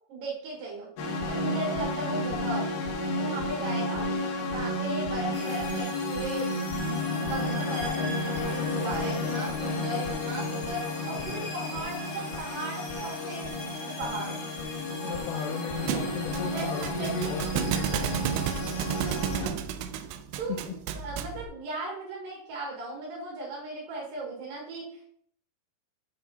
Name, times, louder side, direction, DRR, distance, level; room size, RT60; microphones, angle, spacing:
voice 1, 0.1-0.9 1.3-2.7 3.2-4.1 4.4-6.6 6.9-10.8 11.1-13.4 13.8-14.4 16.5-17.4 17.9-18.2 18.9-19.5 20.4-25.0, right 2 dB, 60° right, -2 dB, 3.3 m, -37 dB
sound 1, 1.0-19.5, left 2 dB, 65° left, 2.4 m, -32 dB
sound 2, 5.3-19.4, equal, 45° left, 2.1 m, -42 dB
voice 2, 11.1-11.4 15.0-18.4 20.5-20.8, left 6 dB, 85° left, 2 dB, 2.9 m, -36 dB
Thump thud, 15.9-21.5, right 9 dB, 85° right, 2.7 m, -32 dB
7.8 x 5.9 x 4.3 m, 0.64 s
omnidirectional pair, 4.8 m